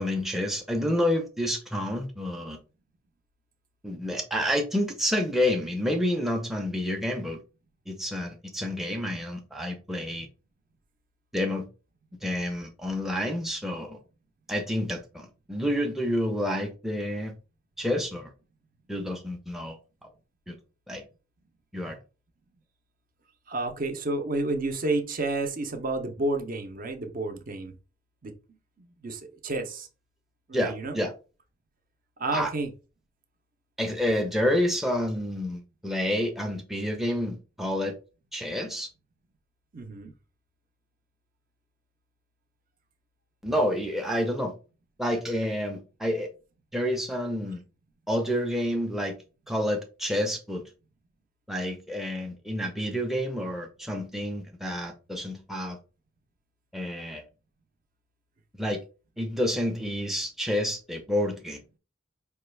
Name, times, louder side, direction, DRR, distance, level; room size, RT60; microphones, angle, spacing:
voice 1, 0.0-2.6 3.8-7.4 7.9-10.3 11.3-11.7 12.2-14.0 14.5-17.4 17.8-18.3 18.9-19.8 20.5-20.6 20.9-21.0 21.7-22.0 30.5-31.1 32.3-32.5 33.8-37.9 38.3-38.9 43.4-44.5 45.0-46.3 46.7-47.6 48.1-49.2 49.5-50.6 51.5-55.8 56.7-57.2 58.6-58.8 59.2-61.6, left 1 dB, ahead, 0.5 m, -29 dB
voice 2, 23.5-27.7 28.2-28.3 28.8-29.9 30.5-31.0 32.2-32.7 39.7-40.1, right 2 dB, 45° right, 0.6 m, -30 dB
5.0 x 2.3 x 3.2 m
head